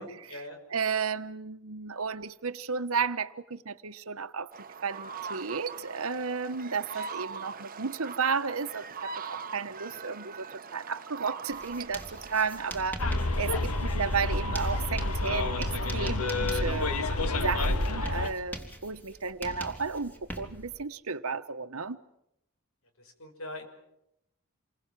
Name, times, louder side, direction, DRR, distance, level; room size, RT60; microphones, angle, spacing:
voice 1, 0.0-0.6 6.9-7.0 7.3-7.6 23.0-23.7, left 1 dB, 65° left, 5.8 m, -44 dB
voice 2, 0.7-4.5 4.8-16.9 17.3-22.0, right 5 dB, 75° right, 1.2 m, -33 dB
sound 1, 4.5-12.8, right 5 dB, 40° right, 1.1 m, -41 dB
Writing, 11.5-20.8, equal, 10° left, 3.3 m, -44 dB
Bus, 13.0-18.3, left 2 dB, 90° left, 1.9 m, -29 dB
28.0 x 23.5 x 7.5 m
head